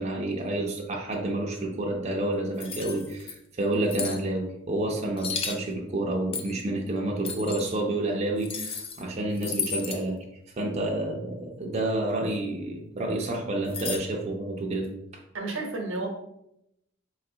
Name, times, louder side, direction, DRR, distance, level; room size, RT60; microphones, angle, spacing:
voice 1, 0.0-10.2 10.6-14.9, right 1 dB, 35° right, -1 dB, 0.5 m, -29 dB
sound 1, 2.6-3.3 3.9-4.2 5.2-5.6 6.3-6.6 7.2-7.7 8.4-9.0 9.4-10.0 13.7-14.0, left 6 dB, 30° left, 0.3 m, -33 dB
voice 2, 15.3-16.1, right 3 dB, 85° right, 2 dB, 0.8 m, -31 dB
4.2 x 2.4 x 2.7 m, 0.81 s
head